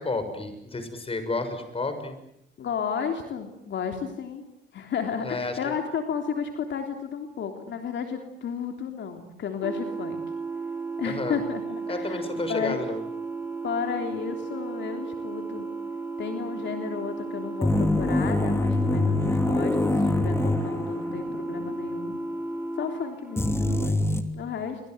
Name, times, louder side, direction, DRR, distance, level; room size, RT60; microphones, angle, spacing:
voice 1, 0.0-2.2 5.2-5.6 11.0-11.4 11.9-13.0, left 3 dB, 30° left, 8 dB, 6.8 m, -31 dB
voice 2, 2.6-4.4 4.7-10.2 11.0-12.2 12.5-12.8 13.6-15.7 16.2-22.2 22.8-24.0 24.3-24.8, left 7 dB, 65° left, 5 dB, 3.4 m, -33 dB
sound 1, 9.6-23.9, right 3 dB, 10° right, 2.9 m, -34 dB
sound 2, 17.6-21.4 21.6-21.7 23.4-24.2, left 2 dB, 10° left, 3.2 m, -24 dB
29.5 x 24.5 x 8.0 m, 0.79 s
cardioid pair, 90°, 20 cm